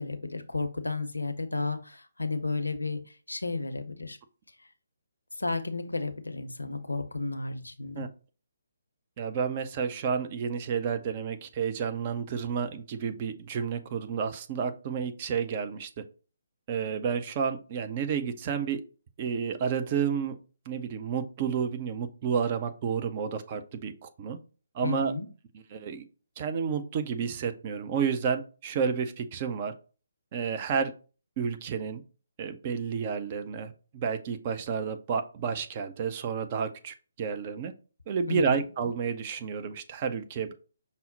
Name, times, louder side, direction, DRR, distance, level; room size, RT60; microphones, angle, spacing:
voice 1, 0.0-4.2 5.4-8.0 24.8-25.3 38.3-38.6, left 3 dB, 75° left, 8 dB, 0.6 m, -33 dB
voice 2, 9.2-15.9 16.7-18.8 19.2-20.4 20.7-24.4 24.7-25.1 25.7-26.0 26.4-29.7 30.3-30.9 31.4-32.0 32.4-37.7 38.1-40.5, right 6 dB, 30° right, 8 dB, 0.4 m, -30 dB
5.5 x 2.0 x 3.9 m, 0.36 s
figure-of-eight pair, 140°, 0 cm